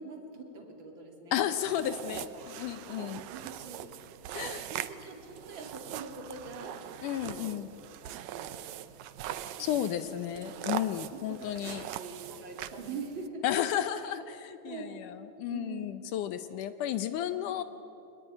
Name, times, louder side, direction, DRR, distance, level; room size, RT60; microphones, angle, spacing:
voice 1, 0.0-1.4 2.1-2.4 3.0-6.8 7.2-7.7 8.0-8.6 9.6-10.4 11.0-13.4 14.6-15.0 15.5-15.9 17.2-17.6, right 4 dB, 35° right, 1 dB, 3.5 m, -45 dB
voice 2, 1.3-3.2 4.3-4.7 7.0-7.7 9.6-11.9 13.4-17.6, left 11 dB, 75° left, 11 dB, 2.1 m, -33 dB
sound 1, 1.6-13.3, right 12 dB, 75° right, 1.7 m, -41 dB
24.0 x 20.0 x 9.9 m, 3.0 s
omnidirectional pair, 4.1 m